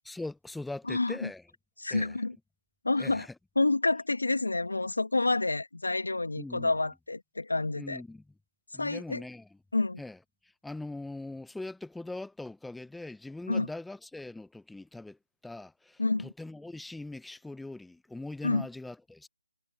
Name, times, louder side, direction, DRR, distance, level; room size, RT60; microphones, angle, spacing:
voice 1, 0.0-1.5 1.9-2.2 3.0-3.4 6.4-6.7 7.8-8.3 8.7-9.6 10.0-19.3, left 2 dB, ahead, 0.7 m, -42 dB
voice 2, 1.8-2.3 2.8-3.2 3.6-8.0 8.8-9.2 9.7-10.0 13.5-13.7 16.0-16.3 18.4-18.6, left 2 dB, 85° left, 2.1 m, -28 dB
figure-of-eight pair, 165°, 0 cm